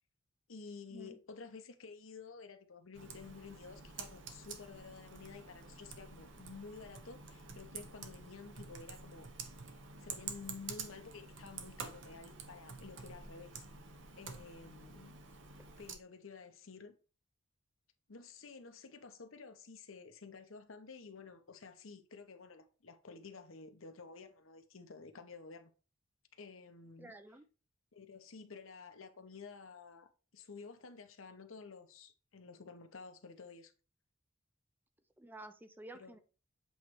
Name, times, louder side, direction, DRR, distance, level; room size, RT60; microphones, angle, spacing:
voice 1, 0.5-9.3 10.0-13.6 14.2-15.1 15.8-16.9 18.1-25.7 26.3-27.1 27.9-33.7 35.9-36.2, left 4 dB, 85° left, 0.9 m, -52 dB
Computer keyboard, 2.9-16.0, right 5 dB, 65° right, 1.0 m, -49 dB
voice 2, 27.0-27.4 35.2-36.2, right 1 dB, 10° right, 0.4 m, -51 dB
8.0 x 3.2 x 4.6 m
head